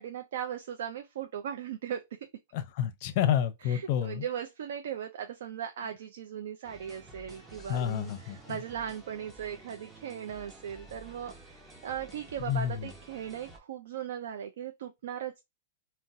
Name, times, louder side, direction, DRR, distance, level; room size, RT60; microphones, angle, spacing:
voice 1, 0.0-2.2 3.6-15.4, right 9 dB, 70° right, 0.4 m, -38 dB
voice 2, 2.5-4.2 7.7-8.6 12.4-12.9, left 10 dB, 45° left, 0.5 m, -30 dB
sound 1, 6.6-13.6, right 2 dB, 10° right, 0.6 m, -51 dB
3.8 x 2.1 x 2.6 m
hypercardioid pair, 155°, 0 cm